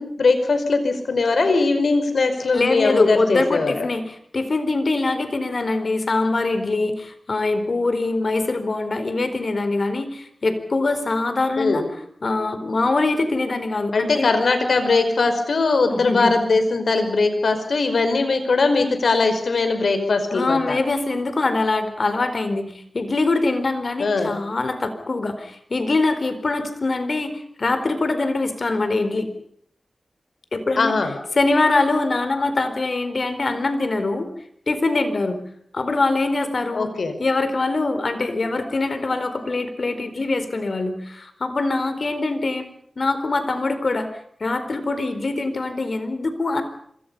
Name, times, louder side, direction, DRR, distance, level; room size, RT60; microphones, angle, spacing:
voice 1, 0.0-3.9 11.6-11.9 13.9-20.8 24.0-24.3 30.8-31.1 36.7-37.1, left 3 dB, 80° left, 8 dB, 5.1 m, -20 dB
voice 2, 2.5-11.8 12.2-14.3 15.9-16.4 20.3-29.3 30.5-30.9 31.3-34.3 34.7-35.4 35.7-36.9 37.2-42.7 43.0-44.1 44.4-46.6, left 3 dB, 55° left, 10 dB, 4.3 m, -23 dB
26.5 x 24.5 x 5.6 m, 0.67 s
wide cardioid pair, 80°, 0 cm